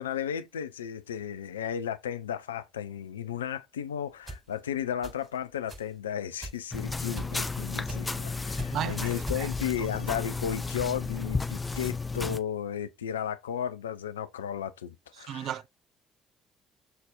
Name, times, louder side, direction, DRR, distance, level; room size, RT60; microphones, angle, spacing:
voice 1, 0.0-15.7, left 9 dB, 80° left, 0.4 m, -34 dB
sound 1, 4.3-4.4 5.0-5.4 5.7-5.9 6.4-6.7 7.2-7.5 7.9-8.1 8.6-8.8 9.3-9.7, right 1 dB, 25° right, 4.5 m, -40 dB
sound 2, 6.7-12.4, left 3 dB, 20° left, 0.7 m, -33 dB
voice 2, 8.7-9.5 9.8-9.9 15.2-15.7, right 11 dB, 55° right, 0.4 m, -35 dB
6.8 x 4.0 x 3.7 m
figure-of-eight pair, 45°, 0 cm